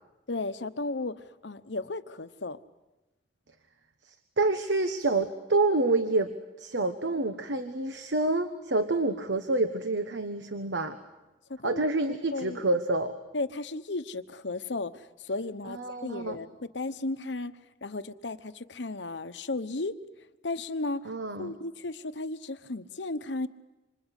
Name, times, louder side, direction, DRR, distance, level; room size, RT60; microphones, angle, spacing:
voice 1, 0.3-2.6 11.5-11.8 12.3-12.6 13.3-17.5 17.8-19.9 20.4-21.1 21.4-23.5, left 2 dB, 80° left, 12 dB, 1.1 m, -34 dB
voice 2, 4.1-6.3 6.6-11.0 11.6-13.1 15.6-16.4 21.0-21.5, right 2 dB, 80° right, 9 dB, 1.3 m, -28 dB
27.0 x 26.5 x 8.3 m, 1.1 s
head